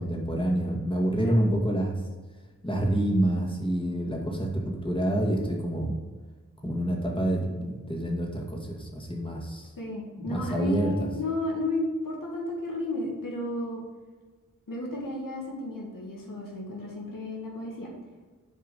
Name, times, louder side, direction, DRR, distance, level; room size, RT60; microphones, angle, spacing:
voice 1, 0.0-2.0 2.6-6.0 6.6-9.7 10.2-11.1, right 1 dB, 15° left, -1 dB, 2.2 m, -27 dB
voice 2, 1.1-1.5 9.8-13.8 14.7-17.9, left 1 dB, 80° left, -2 dB, 2.0 m, -33 dB
7.4 x 4.7 x 6.9 m, 1.3 s
cardioid pair, 45°, 33 cm